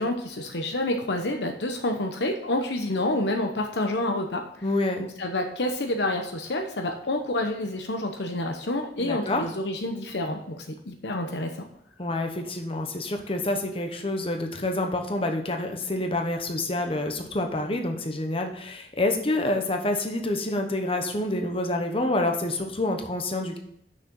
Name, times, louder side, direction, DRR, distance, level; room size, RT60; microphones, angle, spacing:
voice 1, 0.0-4.7 5.0-11.6, left 1 dB, 75° left, 4 dB, 0.9 m, -28 dB
voice 2, 4.6-5.0 9.0-9.4 12.0-23.6, left 2 dB, 30° left, 4 dB, 1.1 m, -27 dB
6.5 x 6.2 x 6.1 m, 0.72 s
head